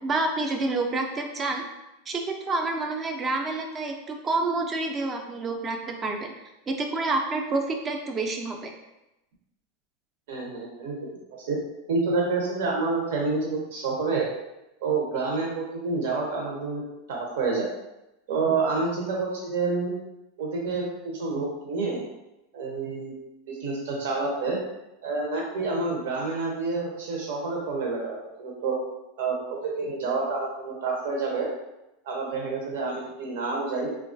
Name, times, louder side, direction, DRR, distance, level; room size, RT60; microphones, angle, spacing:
voice 1, 0.0-1.6 2.1-6.3 6.7-8.7, right 3 dB, 25° right, 3 dB, 0.4 m, -28 dB
voice 2, 10.3-11.1 11.4-11.6 11.9-14.3 14.8-16.8 17.1-17.7 18.3-19.9 20.4-22.0 22.5-23.1 23.5-24.6 25.0-28.8 29.2-31.5 32.0-33.9, right 3 dB, 75° right, -2 dB, 0.7 m, -28 dB
3.1 x 2.3 x 2.5 m, 0.93 s
supercardioid pair, 130°, 0 cm